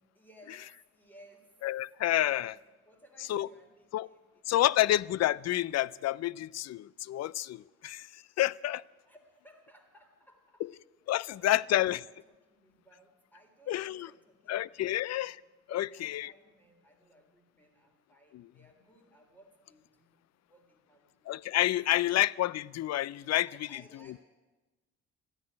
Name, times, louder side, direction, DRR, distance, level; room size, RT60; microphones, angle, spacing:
voice 1, 0.0-1.6 2.1-4.7 9.1-10.6 11.1-15.4 15.7-21.7 23.4-24.2, right 1 dB, 5° left, 3.6 m, -60 dB
voice 2, 1.6-2.5 3.3-3.5 3.9-4.1 4.5-8.8 11.1-12.0 13.7-14.1 14.5-15.3 15.7-16.3 18.3-18.4 21.3-23.8, left 14 dB, 60° left, 0.5 m, -29 dB
14.0 x 10.5 x 9.8 m
cardioid pair, 90°, 30 cm